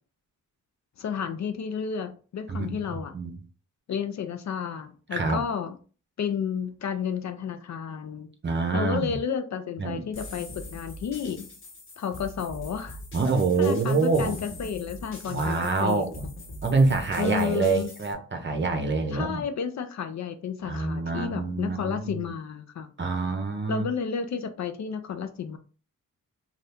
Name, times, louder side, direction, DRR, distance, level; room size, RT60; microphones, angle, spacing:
voice 1, 1.0-3.2 3.9-5.7 6.2-8.3 8.7-11.5 12.0-13.0 13.6-16.1 17.2-17.9 19.1-22.9 23.7-25.6, left 7 dB, 55° left, 0.5 m, -31 dB
voice 2, 5.1-5.4 8.4-9.2 9.8-10.0 13.1-14.4 15.3-16.2 16.6-19.4 20.6-22.2 23.0-23.9, right 4 dB, 35° right, 0.7 m, -26 dB
sound 1, 10.1-18.1, left 1 dB, 40° left, 1.0 m, -43 dB
2.7 x 2.4 x 3.4 m
cardioid pair, 95°, 32 cm